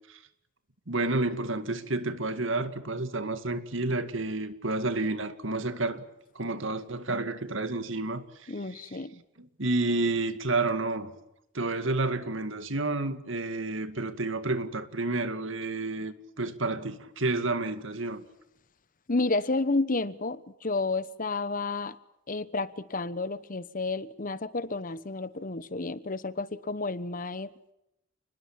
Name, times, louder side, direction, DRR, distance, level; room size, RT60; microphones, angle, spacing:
voice 1, 0.9-6.0 6.3-9.0 9.4-11.1 11.5-18.2, right 2 dB, 65° right, 2.2 m, -30 dB
voice 2, 8.5-9.2 19.1-22.0 22.3-27.7, left 3 dB, 40° left, 1.1 m, -31 dB
29.5 x 21.0 x 7.5 m
head